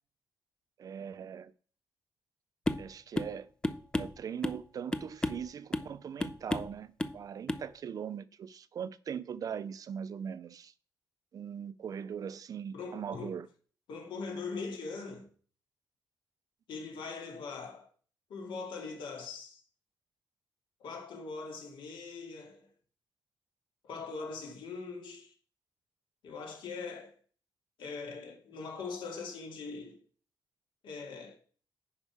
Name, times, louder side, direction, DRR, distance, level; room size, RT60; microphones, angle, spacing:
voice 1, 0.8-1.5 2.8-3.5 4.0-10.7 11.3-13.5, right 7 dB, 50° right, 0.5 m, -40 dB
sound 1, 2.7-2.9 3.2-3.4 3.6-4.6 4.9-5.5 5.7-5.9 6.2-6.7 7.0-7.2 7.5-7.7, left 2 dB, 10° left, 0.5 m, -33 dB
voice 2, 12.7-13.4 13.9-15.3 16.7-17.9 18.3-19.6 20.8-22.7 23.8-25.3 26.2-27.2 27.8-30.0 30.8-31.4, left 4 dB, 80° left, 2.5 m, -41 dB
9.6 x 5.5 x 4.9 m
cardioid pair, 140°, 8 cm